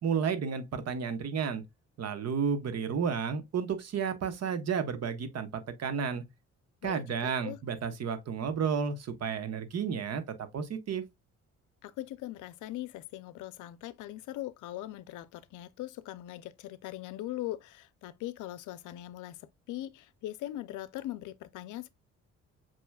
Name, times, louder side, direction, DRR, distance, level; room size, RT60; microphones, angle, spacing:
voice 1, 0.0-1.6 2.0-6.2 6.8-11.0, right 6 dB, 55° right, 1.1 m, -32 dB
voice 2, 6.8-7.6 11.8-21.9, left 14 dB, 85° left, 0.5 m, -41 dB
7.0 x 3.0 x 2.2 m
cardioid pair, 90°, 30 cm